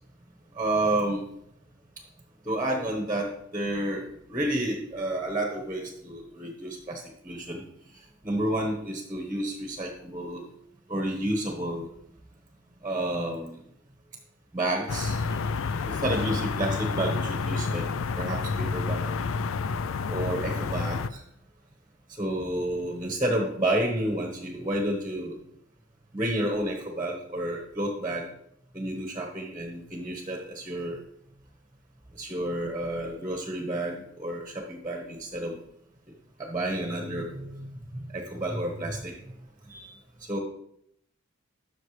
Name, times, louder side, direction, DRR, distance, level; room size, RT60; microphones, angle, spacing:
voice 1, 0.5-1.3 2.4-7.6 8.2-10.4 10.9-11.9 12.8-13.6 14.5-17.8 18.2-19.2 20.1-21.2 22.2-25.4 26.1-28.3 28.7-31.0 32.1-35.6 36.4-39.1 39.7-39.9 40.3-40.4, right 1 dB, 15° right, 1 dB, 1.3 m, -30 dB
sound 1, 14.9-21.1, left 4 dB, 80° left, 0.4 m, -29 dB
15.5 x 6.6 x 3.3 m, 0.75 s
head